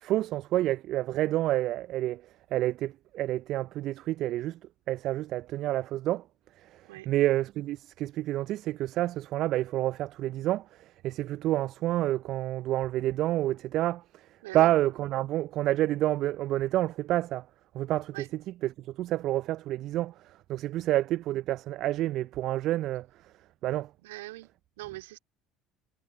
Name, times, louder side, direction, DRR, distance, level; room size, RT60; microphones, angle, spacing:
voice 1, 0.0-2.2 2.5-4.6 4.9-6.2 6.6-14.3 14.5-17.5 17.7-23.1 23.6-23.9, right 15 dB, 55° right, 0.5 m, -29 dB
voice 2, 24.0-25.2, right 19 dB, 70° right, 3.5 m, -42 dB
figure-of-eight pair, 60°, 0 cm